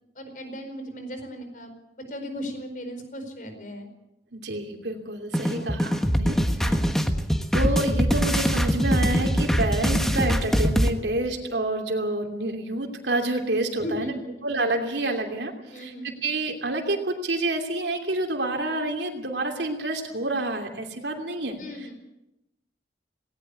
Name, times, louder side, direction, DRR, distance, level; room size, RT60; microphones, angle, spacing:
voice 1, 0.1-1.7 2.1-3.9 5.5-5.8 6.6-6.8 13.8-14.1 15.7-16.1 21.6-22.0, equal, 45° left, 7 dB, 4.7 m, -36 dB
voice 2, 4.3-6.4 7.5-14.1 14.4-15.9 16.2-21.6, right 2 dB, 75° right, 2 dB, 2.8 m, -28 dB
sound 1, 5.3-10.9, equal, ahead, 1.3 m, -23 dB
18.5 x 18.0 x 8.3 m, 0.92 s
head